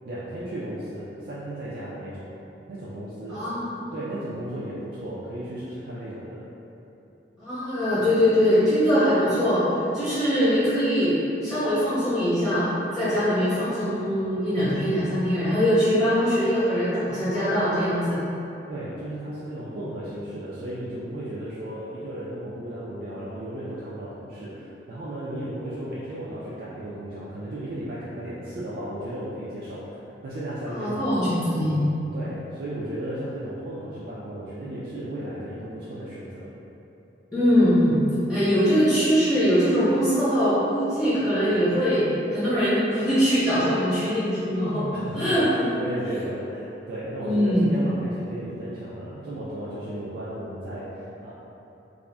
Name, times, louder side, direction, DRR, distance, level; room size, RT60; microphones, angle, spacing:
voice 1, 0.0-2.3 2.7-3.5 3.9-6.4 18.7-31.3 32.1-36.5 44.9-51.3, right 1 dB, 55° right, -8 dB, 0.3 m, -35 dB
voice 2, 3.3-3.6 7.4-9.6 9.9-11.1 11.4-18.2 30.7-31.8 37.3-38.0 38.3-42.0 42.3-45.7 47.2-47.7, equal, 15° left, -14 dB, 0.8 m, -22 dB
2.4 x 2.0 x 3.3 m, 2.9 s
head